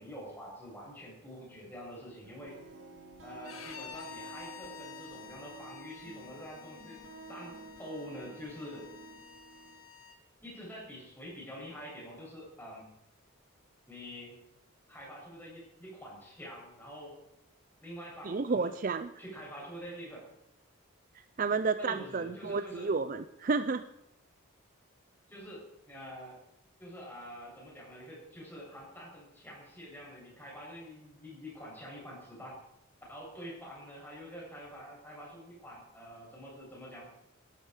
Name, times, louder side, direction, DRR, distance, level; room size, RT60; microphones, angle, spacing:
voice 1, 0.0-2.7 3.2-7.0 7.3-7.5 7.8-8.9 10.4-12.9 13.9-14.4 14.9-17.1 17.8-18.7 19.2-20.3 21.8-22.9 25.3-26.4 26.8-32.6 33.1-37.0, equal, 10° left, -4 dB, 8.0 m, -46 dB
sound 1, 2.2-9.8, right 4 dB, 60° right, 2.7 m, -51 dB
Bowed string instrument, 3.4-10.2, left 9 dB, 85° left, 1.7 m, -50 dB
voice 2, 18.3-19.1 21.4-23.9, right 4 dB, 40° right, 12 dB, 0.4 m, -31 dB
17.5 x 13.0 x 4.9 m, 0.84 s
head